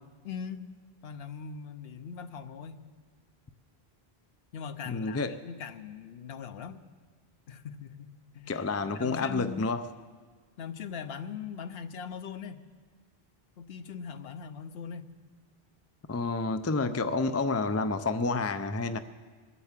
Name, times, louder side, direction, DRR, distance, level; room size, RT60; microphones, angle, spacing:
voice 1, 0.2-0.6 1.0-2.9 4.5-6.8 7.5-9.7 10.6-12.7 13.6-15.1, left 7 dB, 80° left, 8 dB, 1.0 m, -41 dB
voice 2, 4.9-5.4 8.5-9.9 16.1-19.0, left 3 dB, 25° left, 10 dB, 0.3 m, -29 dB
21.5 x 8.3 x 7.4 m, 1.5 s
omnidirectional pair, 1.0 m